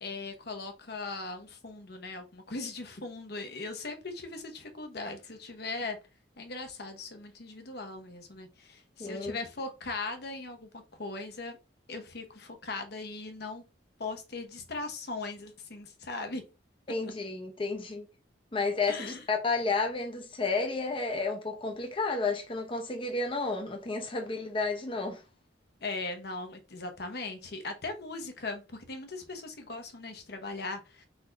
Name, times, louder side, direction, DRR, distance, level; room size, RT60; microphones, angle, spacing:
voice 1, 0.0-6.0 6.4-10.7 11.0-11.6 11.9-13.6 14.0-16.4 17.0-17.1 18.9-19.2 25.8-31.1, left 3 dB, 60° left, 1.0 m, -39 dB
voice 2, 9.0-9.4 16.9-18.0 18.5-25.2, left 3 dB, 30° left, 0.8 m, -31 dB
4.1 x 2.6 x 4.5 m
head